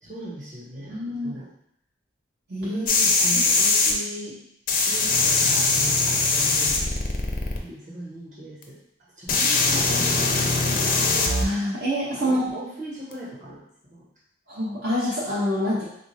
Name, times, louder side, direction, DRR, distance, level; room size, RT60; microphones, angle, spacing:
voice 1, 0.0-1.5 2.6-4.4 4.8-6.8 7.6-8.8 9.2-10.3 12.2-14.0, right 1 dB, 40° right, -7 dB, 1.2 m, -38 dB
voice 2, 0.9-1.4 2.5-2.8 3.3-3.4 11.4-12.5 14.5-15.9, equal, 60° right, -9 dB, 0.8 m, -26 dB
sound 1, 2.9-3.9 4.7-7.6 8.6-8.7 9.3-11.4 13.1-13.2, left 3 dB, 45° left, 0.5 m, -21 dB
3.6 x 2.5 x 3.2 m, 0.72 s
head